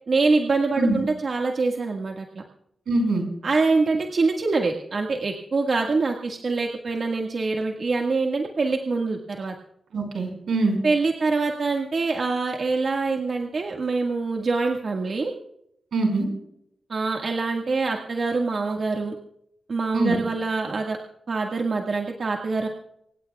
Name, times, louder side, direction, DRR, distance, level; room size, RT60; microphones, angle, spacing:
voice 1, 0.1-2.4 3.4-9.5 10.8-15.3 16.9-19.2 19.7-21.0 21.3-22.7, right 3 dB, 60° right, 1 dB, 1.8 m, -25 dB
voice 2, 2.9-3.2 9.9-10.8 15.9-16.3 19.9-20.2, right 2 dB, 90° right, 4 dB, 5.2 m, -23 dB
26.5 x 16.5 x 2.4 m, 0.76 s
cardioid pair, 80°, 0 cm